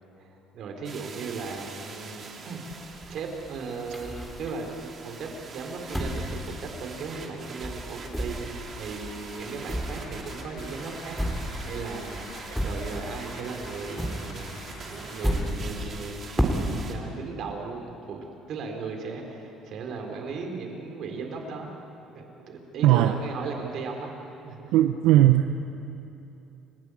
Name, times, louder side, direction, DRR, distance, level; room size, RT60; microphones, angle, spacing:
voice 1, 0.2-2.6 3.1-14.6 14.9-21.7 22.1-24.1 24.4-24.7, right 4 dB, 55° right, 3 dB, 4.2 m, -37 dB
sound 1, 0.8-16.9, right 4 dB, 35° right, 3.0 m, -43 dB
sound 2, 2.7-4.8 5.3-7.4 7.6-13.3 13.6-17.0, equal, ahead, 3.1 m, -32 dB
sound 3, 7.5-15.5, left 4 dB, 85° left, 4.2 m, -50 dB
voice 2, 22.8-23.1 24.7-25.7, right 13 dB, 90° right, 7 dB, 0.8 m, -19 dB
29.5 x 16.5 x 8.6 m, 2.9 s
cardioid pair, 140°, 0 cm